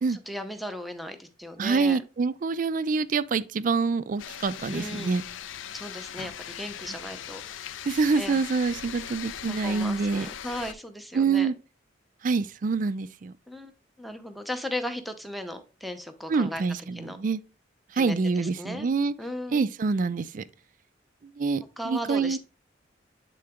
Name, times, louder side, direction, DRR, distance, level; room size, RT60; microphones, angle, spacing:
voice 1, 0.1-2.0 4.7-5.1 5.7-7.4 8.2-8.4 9.5-11.5 13.5-13.7 14.0-16.6 16.9-17.2 17.9-18.9 19.2-19.6 21.8-22.4, left 1 dB, ahead, 0.6 m, -36 dB
voice 2, 1.6-5.2 7.9-10.3 11.1-11.5 12.2-13.3 16.3-17.4 17.9-19.1 19.5-20.4 21.4-22.4, right 4 dB, 45° right, 0.3 m, -26 dB
sound 1, 4.2-10.7, left 9 dB, 85° left, 0.4 m, -39 dB
8.6 x 3.8 x 3.5 m
head